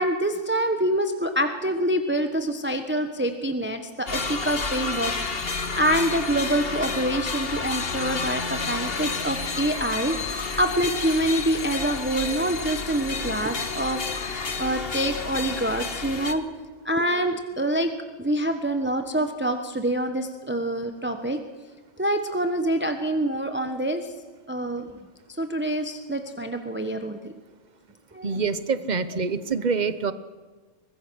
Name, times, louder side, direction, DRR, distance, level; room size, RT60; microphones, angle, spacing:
voice 1, 0.0-5.1 5.4-16.4 16.8-17.9 18.2-21.4 22.0-24.1 24.5-25.0 25.4-27.3 28.1-28.5, right 1 dB, 10° right, 6 dB, 1.2 m, -26 dB
sound 1, 4.1-16.3, left 4 dB, 50° left, 1.6 m, -30 dB
voice 2, 28.2-30.1, right 5 dB, 35° right, 13 dB, 1.0 m, -26 dB
24.0 x 20.5 x 6.4 m, 1.4 s
omnidirectional pair, 1.3 m